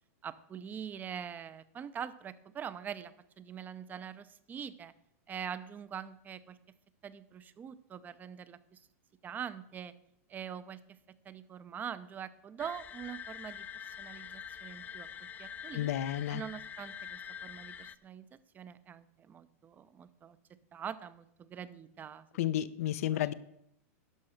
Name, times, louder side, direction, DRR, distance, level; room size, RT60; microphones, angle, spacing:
voice 1, 0.2-4.9 5.3-6.6 7.0-8.8 9.2-9.9 10.3-11.0 11.2-15.1 15.4-15.9 16.3-20.4 20.7-22.3 23.1-23.3, right 8 dB, 20° right, 15 dB, 0.6 m, -44 dB
sound 1, 12.6-17.9, left 8 dB, 20° left, 0.4 m, -45 dB
voice 2, 15.7-16.4 22.4-23.3, left 12 dB, 70° left, 16 dB, 0.6 m, -31 dB
12.0 x 5.5 x 6.4 m, 0.77 s
hypercardioid pair, 130°, 8 cm